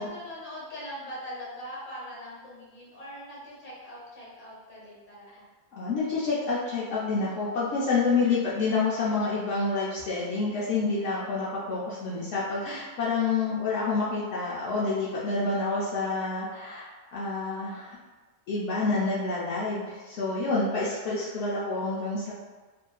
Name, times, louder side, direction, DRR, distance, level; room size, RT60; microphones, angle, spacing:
voice 1, 0.0-5.5, equal, 45° left, -7 dB, 1.1 m, -41 dB
voice 2, 5.8-18.0 18.5-22.3, left 3 dB, 75° left, -8 dB, 0.9 m, -28 dB
2.7 x 2.4 x 2.2 m, 1.3 s
omnidirectional pair, 1.3 m